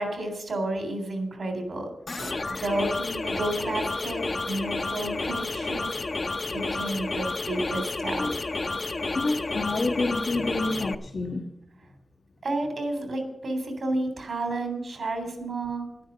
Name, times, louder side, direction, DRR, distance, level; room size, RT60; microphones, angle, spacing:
voice 1, 0.0-1.9 2.2-6.0 6.5-8.3 12.4-15.8, right 2 dB, 85° right, 5 dB, 3.5 m, -31 dB
sound 1, 2.1-10.9, left 3 dB, 50° left, 0.8 m, -31 dB
voice 2, 9.1-11.5, left 2 dB, 80° left, 0 dB, 1.5 m, -28 dB
11.5 x 10.0 x 6.9 m, 0.88 s
wide cardioid pair, 90°, 0 cm